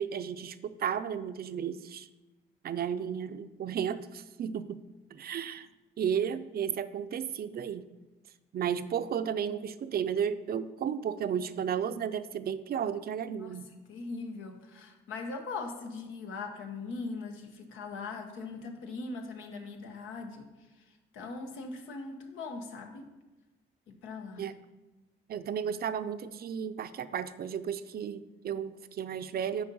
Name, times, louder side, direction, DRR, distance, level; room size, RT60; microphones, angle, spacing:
voice 1, 0.0-2.1 2.6-4.8 5.1-5.7 6.0-7.8 8.5-13.7 24.4-24.6 25.3-29.6, right 8 dB, 50° right, 12 dB, 0.5 m, -33 dB
voice 2, 13.9-20.5 21.1-23.0 23.9-24.4, left 3 dB, 90° left, 4 dB, 1.2 m, -40 dB
9.5 x 4.3 x 5.4 m, 1.1 s
cardioid pair, 90°, 20 cm